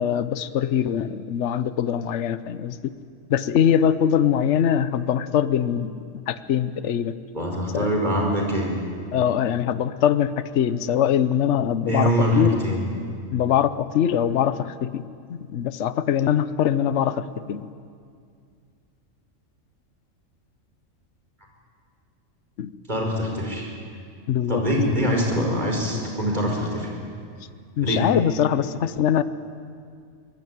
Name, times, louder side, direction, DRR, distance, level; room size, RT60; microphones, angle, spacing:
voice 1, 0.0-2.9 3.3-7.2 7.7-7.9 9.1-12.6 13.3-15.0 15.3-17.7 22.6-22.7 24.3-24.6 27.8-29.2, left 9 dB, 65° left, 14 dB, 1.1 m, -22 dB
voice 2, 7.3-8.7 11.9-12.8 22.9-23.7 24.5-27.0 27.8-28.0, equal, 35° right, 0 dB, 5.4 m, -23 dB
24.0 x 20.0 x 9.4 m, 2.2 s
omnidirectional pair, 1.4 m